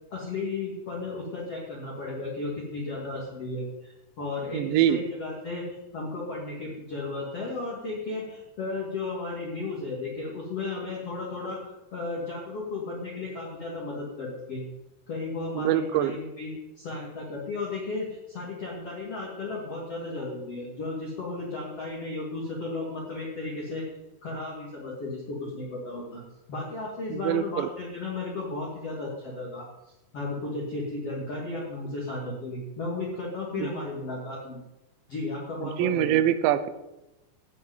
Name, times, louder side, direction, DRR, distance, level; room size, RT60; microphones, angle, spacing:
voice 1, 0.1-11.6 11.9-14.6 15.1-23.8 24.2-26.2 26.5-29.7 30.1-34.6 35.1-36.2, left 3 dB, 40° left, -4 dB, 3.0 m, -34 dB
voice 2, 4.5-5.0 15.5-16.2 27.1-27.7 33.5-33.7 35.6-36.7, right 11 dB, 80° right, 11 dB, 2.9 m, -24 dB
13.5 x 5.9 x 9.3 m, 0.97 s
omnidirectional pair, 5.3 m